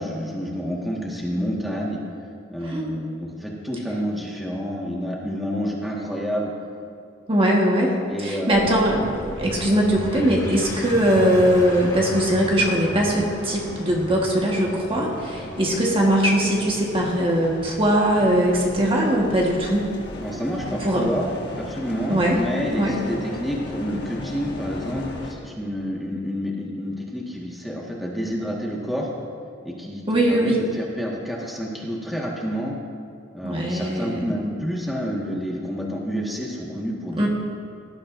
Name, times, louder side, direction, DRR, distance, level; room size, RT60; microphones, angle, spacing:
voice 1, 0.0-2.0 2.5-6.5 8.1-8.7 10.5-10.6 20.2-29.1 29.6-32.8 33.3-37.2, equal, ahead, -3 dB, 1.5 m, -29 dB
voice 2, 2.6-3.0 7.3-7.9 8.2-19.9 20.8-21.1 22.1-22.4 22.8-22.9 30.1-30.6 33.4-34.2 37.1-37.3, right 1 dB, 30° right, -2 dB, 1.4 m, -21 dB
sound 1, 8.5-19.6, left 1 dB, 20° left, 1.7 m, -37 dB
sound 2, 10.5-25.3, left 1 dB, 65° left, 1.5 m, -37 dB
18.5 x 12.0 x 2.6 m, 2.3 s
head